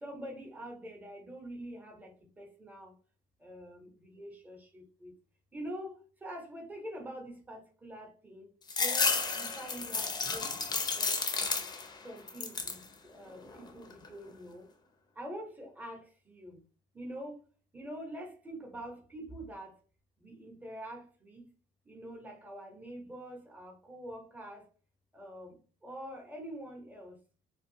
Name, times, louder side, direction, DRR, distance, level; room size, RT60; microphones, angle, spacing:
voice 1, 0.0-2.9 3.4-5.1 5.5-5.9 6.2-8.5 8.8-10.6 10.9-11.1 12.0-14.6 15.2-16.6 16.9-17.4 17.7-19.7 20.2-21.4 21.9-24.6 25.1-27.2, right 1 dB, 10° right, 0.8 m, -45 dB
sound 1, 8.7-12.0 12.3-12.9 13.3-14.1, left 4 dB, 25° left, 0.5 m, -32 dB
2.6 x 2.3 x 2.7 m
cardioid pair, 110°, 17 cm